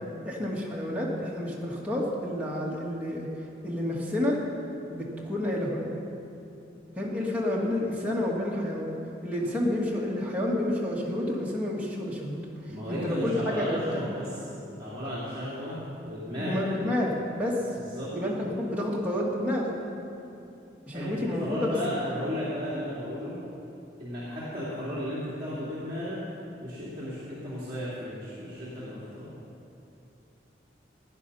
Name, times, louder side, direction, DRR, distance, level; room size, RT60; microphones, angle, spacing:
voice 1, 0.3-3.3 3.6-4.4 4.9-5.9 7.0-9.0 9.2-12.4 12.9-14.0 16.4-17.6 18.1-19.7 20.9-21.8, left 1 dB, 10° right, -5 dB, 2.0 m, -29 dB
voice 2, 12.7-14.5 14.8-16.6 17.8-18.1 20.9-23.4 24.0-26.3 26.6-29.3, equal, 30° right, -11 dB, 3.1 m, -34 dB
17.5 x 10.0 x 5.7 m, 2.8 s
head